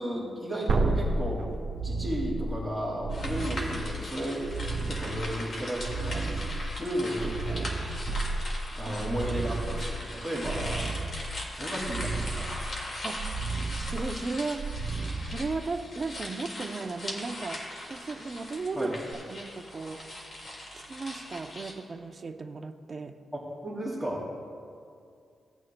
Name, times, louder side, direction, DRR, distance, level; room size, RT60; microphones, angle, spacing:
voice 1, 0.0-1.6 1.8-4.5 4.9-7.7 8.7-11.0 11.6-12.7 18.7-18.9 23.3-24.2, equal, 5° left, -8 dB, 2.4 m, -34 dB
sound 1, 0.7-16.0 19.1-19.2, right 3 dB, 65° right, 1.2 m, -33 dB
sound 2, 3.1-21.7, left 1 dB, 50° left, 2.0 m, -40 dB
voice 2, 13.9-14.8 15.3-17.6 17.9-19.0 19.3-20.0 20.7-23.2, right 3 dB, 40° right, 6 dB, 0.6 m, -35 dB
17.0 x 9.1 x 2.3 m, 2.3 s
wide cardioid pair, 115°, 0 cm